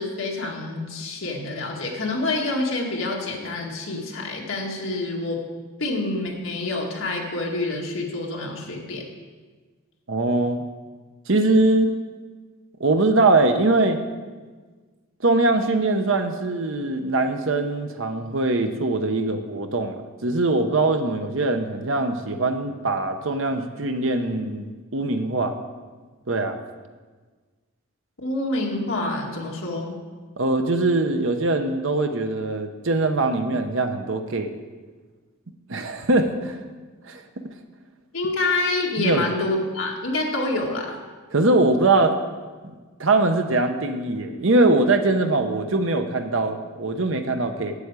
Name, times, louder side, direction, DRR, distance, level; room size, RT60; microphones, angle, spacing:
voice 1, 0.0-5.4 5.8-9.1 28.2-29.9 38.1-41.0, left 2 dB, 65° left, -1 dB, 2.0 m, -27 dB
voice 2, 10.1-10.6 11.3-11.9 12.8-14.0 15.2-25.6 26.3-26.6 30.4-34.5 35.7-36.6 37.1-37.2 39.0-39.2 41.3-42.1 43.0-47.7, right 2 dB, 60° right, 6 dB, 0.9 m, -22 dB
8.6 x 8.2 x 8.2 m, 1.4 s
head